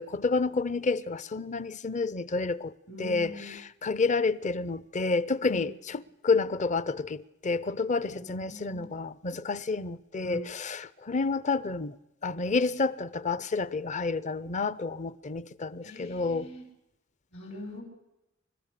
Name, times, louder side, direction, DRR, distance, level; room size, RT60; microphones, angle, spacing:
voice 1, 0.0-2.7 3.0-12.0 12.2-16.5, left 4 dB, 35° left, 0.6 m, -29 dB
voice 2, 2.9-3.6 5.4-5.6 8.1-8.8 10.2-10.5 15.8-16.6 17.3-17.8, left 1 dB, 70° left, 6.5 m, -42 dB
30.0 x 13.0 x 6.7 m
head